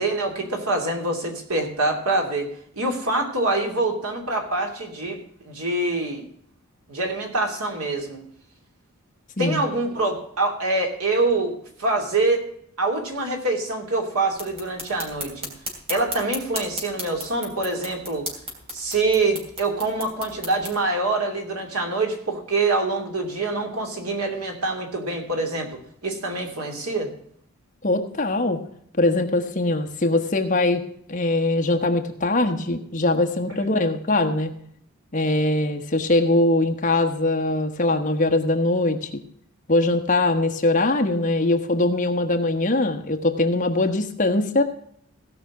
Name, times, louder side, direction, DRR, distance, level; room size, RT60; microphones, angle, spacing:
voice 1, 0.0-2.5 2.8-6.2 6.9-8.2 9.4-12.5 12.8-15.5 15.9-18.3 18.7-27.1 33.5-33.7, right 2 dB, 85° right, 3 dB, 2.8 m, -25 dB
sound 1, 14.3-20.8, equal, 25° right, 3.1 m, -36 dB
voice 2, 27.8-28.6 29.0-34.5 35.1-39.2 39.7-44.6, left 2 dB, 35° left, 5 dB, 1.2 m, -22 dB
16.5 x 5.8 x 6.0 m, 0.67 s
head